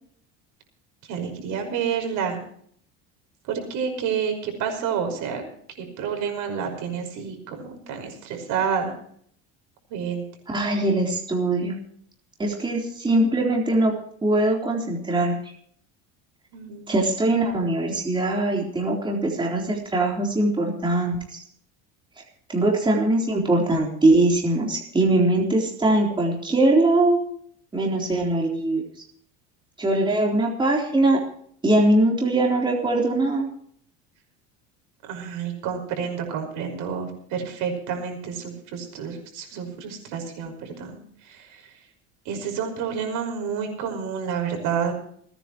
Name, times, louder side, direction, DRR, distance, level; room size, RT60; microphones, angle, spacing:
voice 1, 1.1-2.4 3.5-5.4 5.8-8.9 9.9-10.2 16.5-17.1 27.8-28.0 35.0-41.0 41.2-41.7 42.3-44.9, right 7 dB, 65° right, 4 dB, 5.6 m, -29 dB
voice 2, 10.5-11.7 12.4-13.9 14.2-15.5 16.9-21.4 22.5-27.2 27.7-28.8 29.8-31.2 31.6-33.5, right 2 dB, 15° right, -1 dB, 3.9 m, -21 dB
29.0 x 10.0 x 3.1 m, 0.62 s
cardioid pair, 135°, 33 cm